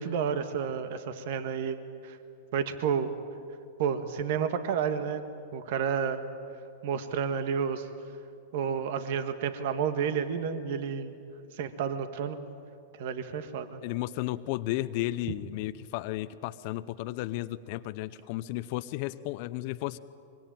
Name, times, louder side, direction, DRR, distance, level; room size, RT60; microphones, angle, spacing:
voice 1, 0.0-2.2 2.5-3.1 3.8-5.2 5.5-6.2 6.8-7.9 8.5-11.1 11.5-12.4 13.0-13.8, right 7 dB, 60° right, 9 dB, 1.6 m, -30 dB
voice 2, 13.8-20.0, left 16 dB, 55° left, 12 dB, 0.7 m, -33 dB
25.0 x 23.0 x 9.1 m, 2.5 s
hypercardioid pair, 115°, 0 cm